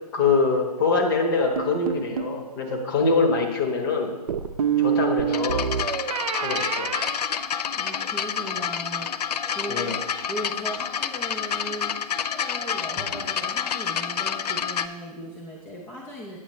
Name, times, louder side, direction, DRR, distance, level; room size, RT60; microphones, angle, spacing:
voice 1, 0.1-4.1 4.8-5.6 6.3-6.9 9.7-10.0, left 4 dB, 35° left, 3 dB, 1.2 m, -24 dB
sound 1, 1.6-2.4 4.3-8.0, right 8 dB, 60° right, 0.5 m, -27 dB
sound 2, 5.3-14.9, left 7 dB, 75° left, 0.4 m, -29 dB
voice 2, 7.7-9.1 9.5-9.9 10.3-16.4, equal, 10° left, -2 dB, 0.4 m, -37 dB
8.1 x 7.0 x 3.1 m, 1.2 s
figure-of-eight pair, 135°, 21 cm